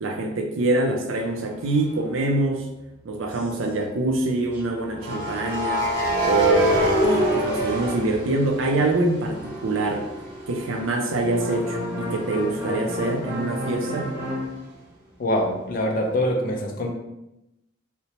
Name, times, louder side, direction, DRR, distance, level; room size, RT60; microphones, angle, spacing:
voice 1, 0.0-2.7 3.0-5.9 6.2-10.1 10.5-14.1, right 2 dB, 80° right, 3 dB, 0.4 m, -25 dB
sound 1, 1.7-1.9 5.0-8.9 9.3-12.8, right 1 dB, 45° right, 0.7 m, -26 dB
sound 2, 3.3-3.5 3.8-3.9 4.4-7.5 8.7-9.2 11.2-14.5, equal, 10° right, 0.5 m, -32 dB
voice 2, 15.2-16.9, left 1 dB, 45° left, 1 dB, 0.4 m, -24 dB
2.9 x 2.1 x 2.8 m, 0.90 s
head